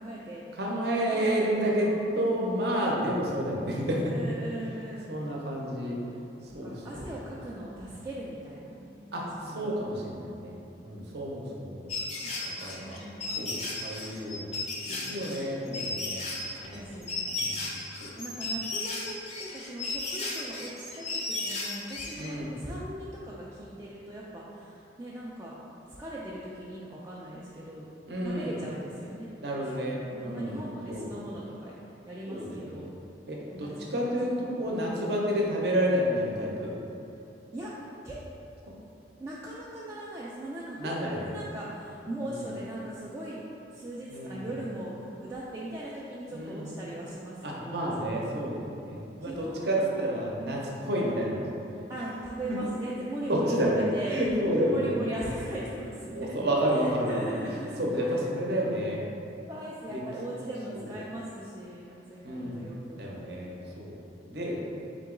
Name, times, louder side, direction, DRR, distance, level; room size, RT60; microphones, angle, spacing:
voice 1, 0.0-0.5 0.9-2.0 4.1-5.1 6.5-9.7 10.1-10.6 12.2-13.4 14.8-15.4 16.7-17.5 18.1-25.5 25.9-27.9 28.2-31.8 32.0-32.9 33.5-34.6 37.5-37.7 38.0-38.2 39.2-48.3 49.2-50.2 50.4-50.7 51.9-54.3 54.7-56.3 56.7-57.8 58.1-58.2 59.5-63.7, right 1 dB, 15° right, -7 dB, 0.3 m, -40 dB
voice 2, 0.5-1.9 2.1-4.3 5.1-6.0 6.4-7.0 9.1-10.5 10.8-11.9 12.6-13.0 13.4-14.5 14.9-16.2 16.6-16.9 17.3-18.1 22.1-22.6 28.1-28.6 29.4-31.1 32.3-32.9 33.3-36.7 40.8-41.3 42.2-42.4 44.1-44.5 46.3-46.7 47.4-51.5 52.5-52.6 53.3-55.3 56.1-57.5 57.8-59.0 59.9-60.0 60.7-60.9 62.2-62.6 63.0-63.9 64.3-64.6, equal, 60° right, -3 dB, 0.7 m, -30 dB
sound 1, 11.9-22.3, left 3 dB, 35° left, 0.5 m, -35 dB
3.8 x 2.9 x 3.7 m, 2.8 s
head